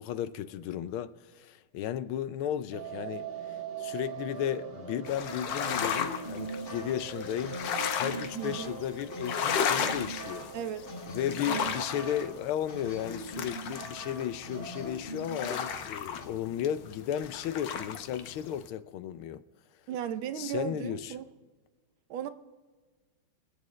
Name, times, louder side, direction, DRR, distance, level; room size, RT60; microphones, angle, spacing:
voice 1, 0.0-3.3 3.8-10.5 11.1-19.4 20.4-21.1, left 10 dB, 85° left, 1.5 m, -34 dB
sound 1, 2.7-14.8 15.1-15.2 15.5-15.6 15.8-15.9, right 6 dB, 35° right, 1.2 m, -43 dB
sound 2, 5.0-18.7, left 7 dB, 65° left, 1.4 m, -35 dB
sound 3, 5.6-16.3, equal, 45° left, 2.5 m, -42 dB
voice 2, 8.3-8.7 10.5-10.9 11.5-11.7 19.9-21.2 22.1-22.3, right 9 dB, 75° right, 1.5 m, -36 dB
25.5 x 8.6 x 3.2 m
omnidirectional pair, 2.3 m